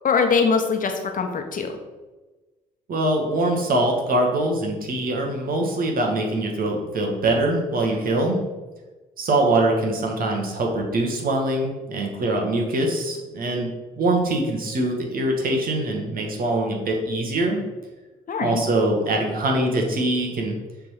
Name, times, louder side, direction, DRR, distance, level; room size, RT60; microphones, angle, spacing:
voice 1, 0.0-1.7 18.3-18.6, left 5 dB, 45° left, 5 dB, 1.3 m, -22 dB
voice 2, 2.9-8.4 9.2-13.7 14.0-17.6 18.4-20.6, right 1 dB, 50° right, 1 dB, 1.7 m, -23 dB
6.5 x 3.8 x 5.8 m, 1.2 s
hypercardioid pair, 55°, 19 cm